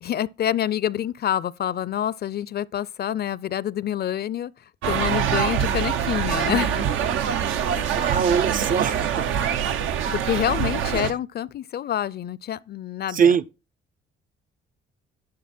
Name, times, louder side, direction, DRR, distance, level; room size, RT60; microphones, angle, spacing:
voice 1, 0.0-4.5 4.9-6.9 7.7-8.1 10.1-13.3, left 11 dB, 55° left, 0.5 m, -27 dB
sound 1, 4.8-11.1, right 8 dB, 90° right, 1.0 m, -24 dB
voice 2, 8.0-9.3 13.1-13.4, right 7 dB, 45° right, 0.6 m, -22 dB
11.5 x 6.7 x 4.3 m
cardioid pair, 90°, 20 cm